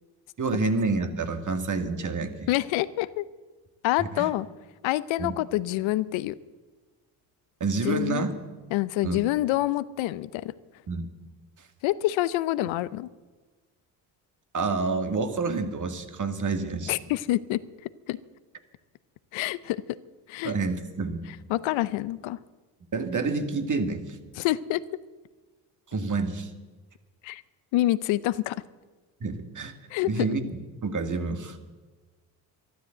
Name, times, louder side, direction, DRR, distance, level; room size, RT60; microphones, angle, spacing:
voice 1, 0.4-2.5 4.0-4.3 5.2-5.4 7.6-8.4 9.0-9.2 10.9-11.1 14.5-16.9 20.4-21.3 22.9-24.2 25.9-26.5 29.2-29.7 30.1-31.6, right 3 dB, 40° right, 7 dB, 2.0 m, -28 dB
voice 2, 2.5-3.3 3.8-4.5 4.8-6.4 7.8-8.3 8.7-10.5 11.8-13.1 16.9-17.6 18.1-18.2 19.3-19.8 20.3-20.5 21.5-22.4 24.3-24.8 27.2-27.4 27.7-28.6 29.9-30.3, left 16 dB, 80° left, 16 dB, 0.7 m, -26 dB
13.0 x 12.0 x 8.0 m, 1.3 s
supercardioid pair, 65°, 46 cm